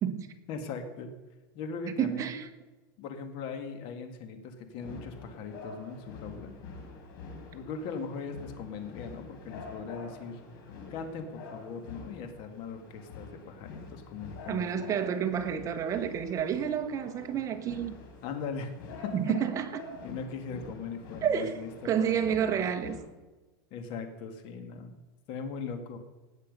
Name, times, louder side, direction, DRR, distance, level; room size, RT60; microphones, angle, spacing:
voice 1, 0.5-1.1 1.5-2.3 3.0-6.5 7.5-10.4 10.9-14.9 17.3-17.4 18.2-18.8 20.0-21.7 22.1-22.6 23.7-24.9 25.3-26.0, left 5 dB, 50° left, 7 dB, 2.1 m, -39 dB
voice 2, 2.0-2.5 14.5-18.0 19.1-19.7 21.2-21.6 21.8-23.0, right 8 dB, 30° right, 7 dB, 1.3 m, -29 dB
sound 1, 4.8-23.0, left 4 dB, 70° left, 4.2 m, -47 dB
18.5 x 7.4 x 5.4 m, 1.2 s
supercardioid pair, 140°, 11 cm